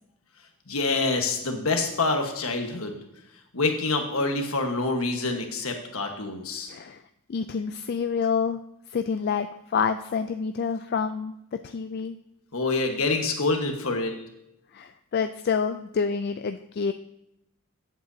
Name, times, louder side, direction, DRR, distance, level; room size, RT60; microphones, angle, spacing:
voice 1, 0.7-3.0 3.5-6.7 12.5-14.2, left 3 dB, 70° left, 4 dB, 1.3 m, -26 dB
voice 2, 6.7-7.0 7.3-8.6 8.9-12.2 14.7-16.9, left 6 dB, 45° left, 8 dB, 0.3 m, -28 dB
14.5 x 8.0 x 2.7 m, 0.83 s
head